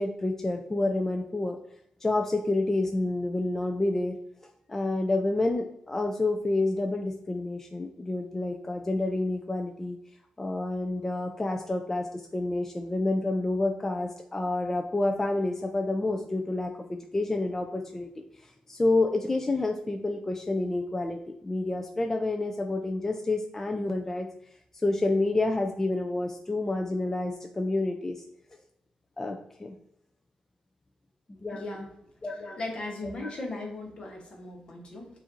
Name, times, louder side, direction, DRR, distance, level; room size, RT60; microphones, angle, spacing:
voice 1, 0.0-1.6 2.0-4.2 4.4-10.0 10.4-18.1 18.4-21.2 21.4-24.3 24.8-28.2 29.2-29.7 31.4-31.6 32.2-32.3, left 2 dB, 20° left, 3 dB, 0.3 m, -29 dB
voice 2, 31.5-31.9 32.4-35.1, left 2 dB, 55° left, 1 dB, 1.1 m, -37 dB
7.0 x 2.5 x 2.6 m, 0.77 s
cardioid pair, 115°, 2 cm